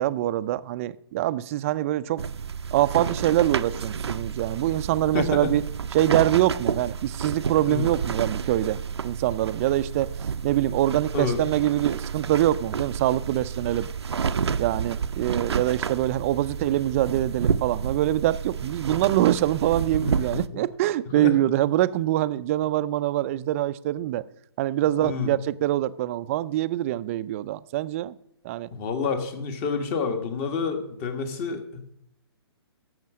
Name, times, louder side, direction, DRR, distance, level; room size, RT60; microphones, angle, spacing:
voice 1, 0.0-2.2 2.7-5.6 5.9-8.8 9.0-10.1 10.4-13.9 14.6-24.2 24.6-28.1 28.4-28.7, right 14 dB, 30° right, 15 dB, 0.4 m, -24 dB
sound 1, 2.2-20.5, right 6 dB, 85° right, 0.5 m, -30 dB
voice 2, 5.1-5.5 7.7-7.9 11.1-11.4 18.9-19.0 20.0-20.4 21.2-21.4 25.0-25.3 28.7-31.9, left 5 dB, 30° left, 8 dB, 1.5 m, -29 dB
11.0 x 7.4 x 6.1 m, 0.74 s
hypercardioid pair, 140°, 14 cm